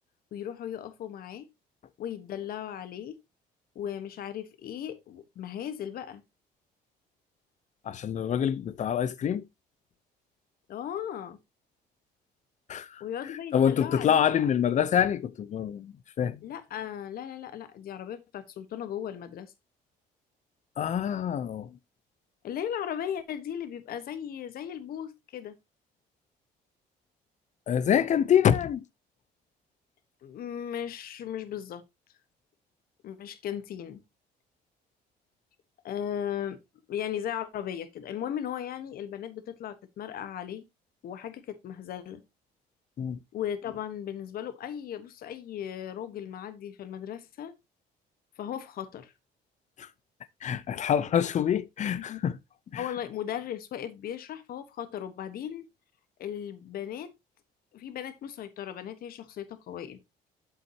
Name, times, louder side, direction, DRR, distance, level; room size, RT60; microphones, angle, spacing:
voice 1, 0.3-1.5 2.0-3.2 3.7-6.2 10.7-11.4 13.0-14.5 16.4-19.5 22.4-25.6 30.2-31.8 33.0-34.0 35.8-36.6 36.9-40.7 41.0-42.2 43.3-47.5 48.4-49.1 51.9-52.2 52.8-55.7 56.2-57.1 57.7-60.0, left 9 dB, 60° left, 1.3 m, -37 dB
voice 2, 7.8-9.4 12.7-13.0 13.5-16.4 20.8-21.8 27.7-28.8 43.0-43.2 49.8-49.9 50.4-52.4 52.7-52.9, left 9 dB, 45° left, 0.7 m, -26 dB
8.3 x 7.6 x 2.9 m
cardioid pair, 110°, 17 cm